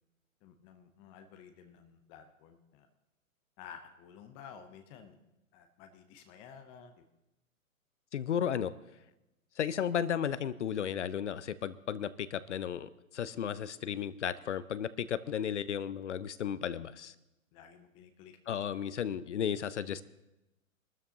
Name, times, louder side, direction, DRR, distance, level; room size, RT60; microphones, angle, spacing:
voice 1, 0.4-2.9 3.6-5.2 5.5-7.0 17.5-18.4, left 7 dB, 15° left, 7 dB, 0.5 m, -53 dB
voice 2, 8.1-8.7 9.6-17.1 18.5-20.0, left 8 dB, 55° left, 16 dB, 0.6 m, -34 dB
23.5 x 13.0 x 2.8 m, 0.93 s
figure-of-eight pair, 115°, 42 cm